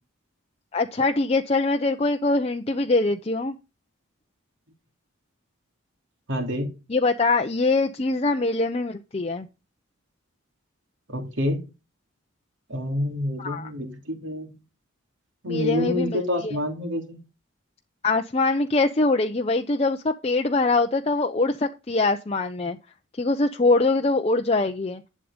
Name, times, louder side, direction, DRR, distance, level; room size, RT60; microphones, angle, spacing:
voice 1, 0.7-3.6 6.9-9.5 13.4-13.7 15.5-16.6 18.0-22.8 23.2-25.0, left 3 dB, 30° left, 5 dB, 0.6 m, -23 dB
voice 2, 6.3-6.7 11.1-11.6 12.7-14.5 15.4-17.2, left 1 dB, 65° right, 4 dB, 3.0 m, -27 dB
11.5 x 7.5 x 5.1 m, 0.28 s
head